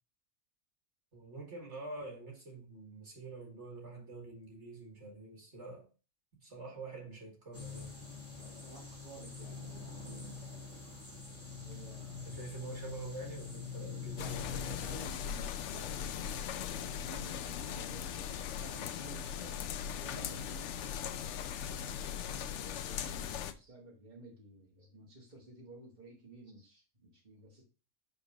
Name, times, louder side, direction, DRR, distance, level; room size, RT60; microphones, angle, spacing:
voice 1, 1.1-5.9 6.4-8.0 12.2-14.6 18.1-18.2 23.6-23.7, right 3 dB, 65° right, 2.1 m, -46 dB
sound 1, 7.5-15.2, left 5 dB, 10° left, 1.6 m, -45 dB
voice 2, 8.4-10.8 11.5-12.9 14.2-21.0 22.1-27.6, right 2 dB, 40° right, 1.7 m, -54 dB
sound 2, 14.2-23.5, left 9 dB, 70° left, 0.9 m, -39 dB
5.3 x 4.3 x 6.0 m
omnidirectional pair, 1.3 m